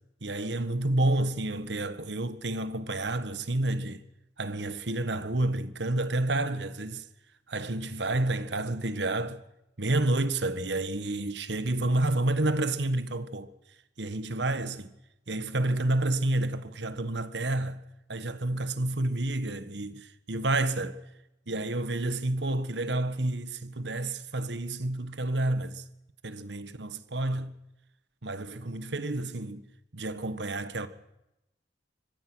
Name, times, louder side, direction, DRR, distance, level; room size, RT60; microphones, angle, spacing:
voice 1, 0.2-4.0 4.4-7.0 7.5-9.4 9.8-13.5 14.0-14.9 15.3-17.8 18.1-21.0 21.5-25.8 26.2-27.5 28.2-29.6 29.9-30.9, right 2 dB, 70° right, 1.5 m, -29 dB
25.0 x 17.0 x 6.3 m
head